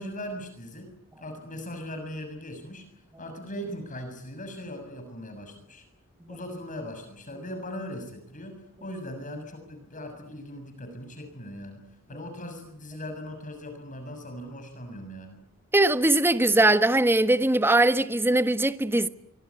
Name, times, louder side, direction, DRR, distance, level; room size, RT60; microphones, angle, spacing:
voice 1, 0.0-2.9 3.2-5.8 6.3-15.4, equal, 35° left, 6.7 m, -39 dB
voice 2, 15.7-19.1, right 2 dB, 10° right, 1.3 m, -21 dB
27.0 x 24.5 x 8.4 m
head